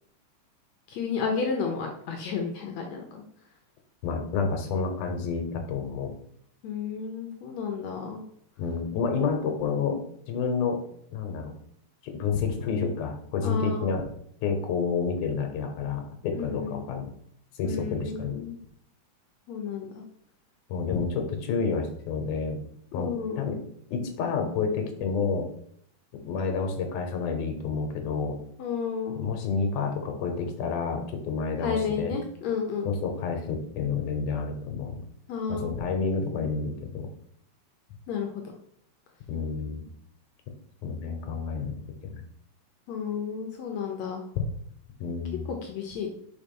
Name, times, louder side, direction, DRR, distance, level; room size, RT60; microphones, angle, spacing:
voice 1, 0.9-3.2 6.6-8.2 13.4-13.9 16.3-16.9 17.6-18.6 19.5-20.0 20.9-21.0 22.9-23.4 28.6-29.2 31.6-32.9 35.3-35.7 38.1-38.4 42.9-44.5 45.6-46.1, left 6 dB, 70° left, 2 dB, 1.9 m, -31 dB
voice 2, 4.0-6.1 8.6-10.0 10.3-10.8 11.1-11.5 12.0-14.0 14.4-17.1 17.6-18.4 20.7-22.6 22.9-23.6 23.9-25.5 26.2-28.4 29.2-32.1 32.9-35.0 35.5-37.1 39.3-39.9 40.8-42.2 45.0-45.5, left 5 dB, 90° left, 5 dB, 2.5 m, -29 dB
5.5 x 4.8 x 5.3 m, 0.67 s
omnidirectional pair, 3.5 m